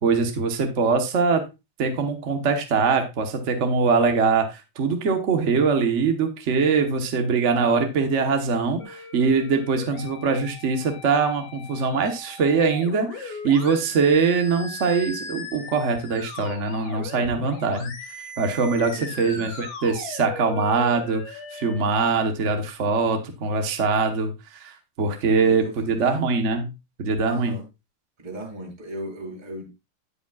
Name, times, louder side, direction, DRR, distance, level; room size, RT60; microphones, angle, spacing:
voice 1, 0.0-1.4 1.8-17.9 18.4-26.7 27.0-27.5, right 4 dB, 45° right, 5 dB, 1.1 m, -23 dB
sound 1, 8.8-21.8, left 3 dB, 80° left, 2.5 m, -39 dB
voice 2, 18.8-19.6 25.4-26.1 27.2-27.6 28.2-29.8, right 1 dB, 20° right, 0 dB, 2.1 m, -37 dB
15.0 x 5.1 x 2.3 m, 0.25 s
omnidirectional pair, 2.4 m